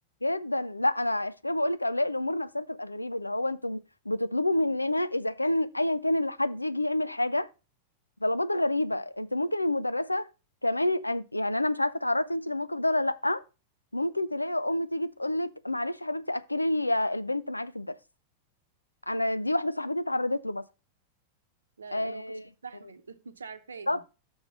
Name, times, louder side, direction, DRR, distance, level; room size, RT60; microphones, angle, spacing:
voice 1, 0.2-7.5 8.2-10.3 10.6-13.4 13.9-18.0 19.1-20.6 21.9-22.4 23.9-24.0, left 1 dB, 85° left, 0.4 m, -28 dB
voice 2, 21.8-24.0, right 5 dB, 75° right, 0.8 m, -45 dB
6.1 x 5.1 x 5.5 m
figure-of-eight pair, 90°, 0 cm